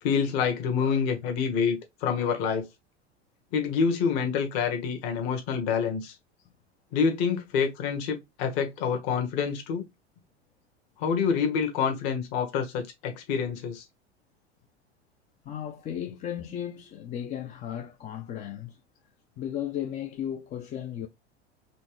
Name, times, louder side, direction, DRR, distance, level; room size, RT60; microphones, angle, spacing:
voice 1, 0.0-2.7 3.5-6.2 6.9-9.8 11.0-13.8, left 6 dB, 50° left, 1.3 m, -27 dB
voice 2, 15.4-18.8 19.4-21.1, left 10 dB, 20° left, 0.5 m, -35 dB
4.3 x 3.0 x 3.0 m
figure-of-eight pair, 85°, 33 cm